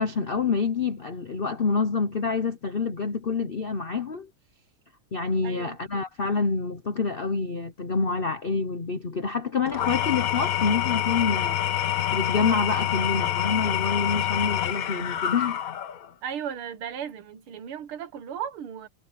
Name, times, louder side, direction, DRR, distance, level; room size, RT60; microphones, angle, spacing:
voice 1, 0.0-4.3 5.1-11.6 12.1-15.6, left 4 dB, 75° left, 0.5 m, -27 dB
voice 2, 5.4-6.0 16.2-18.9, right 8 dB, 80° right, 2.1 m, -36 dB
Engine / Tools, 9.7-16.1, left 11 dB, 55° left, 1.1 m, -27 dB
omnidirectional pair, 2.4 m